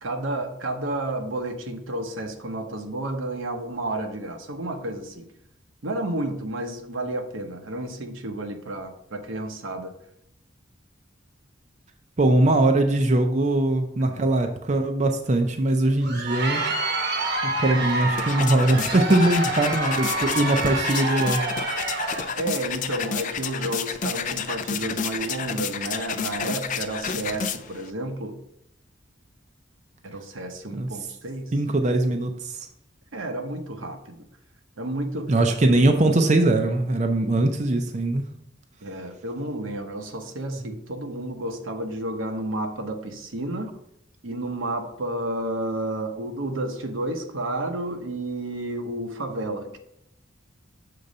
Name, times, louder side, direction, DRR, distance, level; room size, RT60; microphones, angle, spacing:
voice 1, 0.0-5.3 5.8-9.9 22.4-28.4 30.0-31.5 33.1-34.2 34.8-35.3 38.8-43.7 44.2-49.8, right 1 dB, 80° right, 0.9 m, -31 dB
voice 2, 12.2-16.6 17.4-21.4 30.7-30.9 31.5-32.7 35.3-38.2, right 2 dB, 35° right, 0.5 m, -21 dB
Crowd, 15.8-22.4, right 2 dB, 55° right, 1.0 m, -28 dB
sound 1, 17.8-27.9, left 7 dB, 40° left, 0.4 m, -31 dB
6.8 x 3.8 x 5.3 m
head